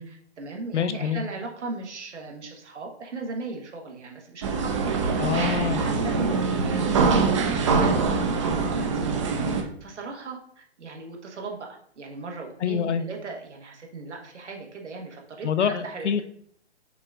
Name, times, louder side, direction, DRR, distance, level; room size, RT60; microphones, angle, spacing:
voice 1, 0.1-5.2 5.7-6.9 7.4-11.6 12.0-16.2, right 3 dB, 80° right, 2 dB, 1.2 m, -38 dB
voice 2, 0.7-1.2 5.2-5.8 12.6-13.0 15.4-16.2, left 8 dB, 85° left, 10 dB, 0.6 m, -25 dB
sound 1, 4.4-9.6, right 4 dB, 30° right, 0.4 m, -23 dB
5.8 x 2.4 x 3.5 m, 0.65 s
hypercardioid pair, 140°, 34 cm